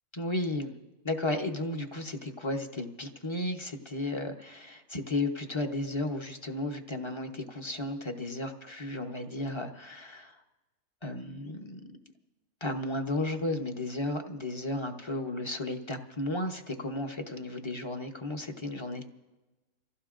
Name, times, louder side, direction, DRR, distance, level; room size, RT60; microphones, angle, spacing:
voice 1, 0.1-0.7 1.0-10.4 11.0-11.8 12.6-19.1, left 2 dB, 25° left, 5 dB, 0.8 m, -34 dB
28.5 x 15.5 x 2.5 m, 1.2 s
omnidirectional pair, 1.3 m